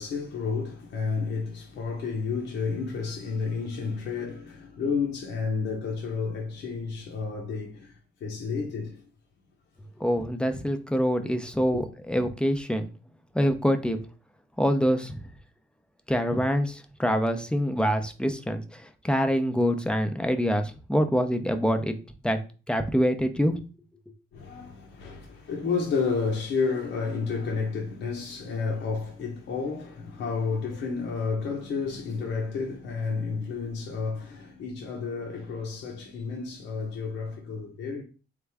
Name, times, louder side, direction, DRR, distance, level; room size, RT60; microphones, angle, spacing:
voice 1, 0.0-9.0 11.7-11.8 24.3-38.0, left 5 dB, 70° left, 1.0 m, -31 dB
voice 2, 10.0-12.9 13.3-14.0 14.6-15.2 16.1-21.9 22.2-22.4 22.7-23.6, equal, 5° left, 0.6 m, -25 dB
3.7 x 3.4 x 3.4 m
cardioid pair, 90°, 20 cm